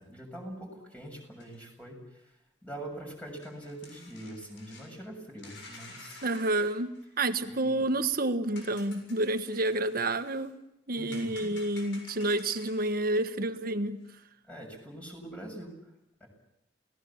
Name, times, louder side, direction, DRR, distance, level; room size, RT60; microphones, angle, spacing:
voice 1, 0.0-2.3 2.6-6.2 7.4-7.8 10.9-11.5 14.5-15.7 16.2-16.3, right 1 dB, 10° left, 1 dB, 7.0 m, -43 dB
sound 1, 1.3-1.6 2.8-2.9 3.4-5.0 5.4-7.6 8.6-10.5 11.1-13.0 14.0-14.1, left 3 dB, 75° left, 7.0 m, -51 dB
voice 2, 6.2-10.5 10.9-14.0, right 2 dB, 50° right, 10 dB, 1.4 m, -29 dB
29.0 x 18.5 x 7.3 m, 0.85 s
head